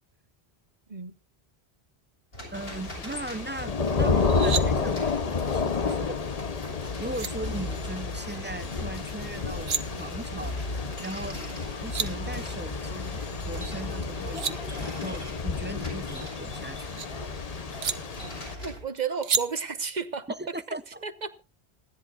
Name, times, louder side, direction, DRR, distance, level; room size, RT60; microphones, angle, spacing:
sound 1, 2.3-18.8, left 1 dB, 70° left, 7.0 m, -39 dB
Thunder / Rain, 2.5-18.5, left 4 dB, 40° left, 0.8 m, -31 dB
voice 1, 2.5-6.2 7.0-10.6 11.0-11.4 11.8-13.2 13.4-17.1 20.4-21.0, right 2 dB, 15° right, 0.5 m, -38 dB
sound 2, 4.2-4.6 6.7-6.8 7.1-7.3 9.4-9.8 11.5-11.6 11.7-12.1 14.0-14.6 16.0-17.1 17.8-18.0 19.2-19.4, right 7 dB, 70° right, 1.1 m, -30 dB
voice 2, 18.6-20.4 20.7-20.8 21.0-21.4, right 5 dB, 45° right, 1.2 m, -32 dB
26.5 x 11.0 x 2.4 m
omnidirectional pair, 1.1 m